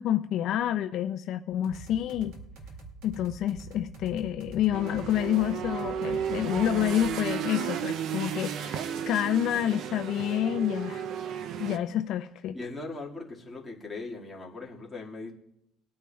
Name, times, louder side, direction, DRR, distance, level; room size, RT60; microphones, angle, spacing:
voice 1, 0.0-2.3 3.0-11.1 11.6-12.6, left 11 dB, 55° left, 7 dB, 0.4 m, -28 dB
sound 1, 1.6-7.1, right 3 dB, 75° right, 2.2 m, -45 dB
sound 2, 4.7-11.8, right 8 dB, 50° right, 0.5 m, -33 dB
voice 2, 12.5-15.3, left 3 dB, 5° left, -4 dB, 1.9 m, -39 dB
21.0 x 9.4 x 2.3 m, 0.78 s
cardioid pair, 150°, 0 cm